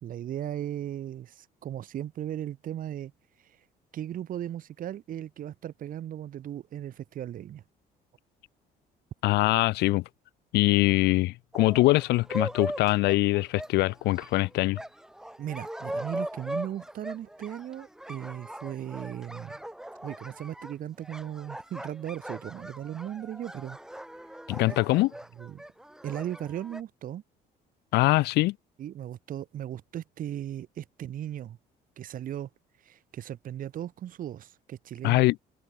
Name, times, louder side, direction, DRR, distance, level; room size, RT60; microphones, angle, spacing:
voice 1, 0.0-3.1 3.4-3.6 3.9-7.6 15.4-19.6 20.0-23.8 25.4-25.6 26.0-27.2 28.8-31.6 32.0-32.5 32.8-35.2, right 11 dB, 55° right, 1.3 m, -37 dB
voice 2, 9.2-10.0 10.5-14.8 24.5-25.1 27.9-28.6 35.0-35.4, left 19 dB, 80° left, 0.7 m, -23 dB
sound 1, 11.5-26.8, right 1 dB, 5° right, 1.0 m, -40 dB
cardioid pair, 110°, 17 cm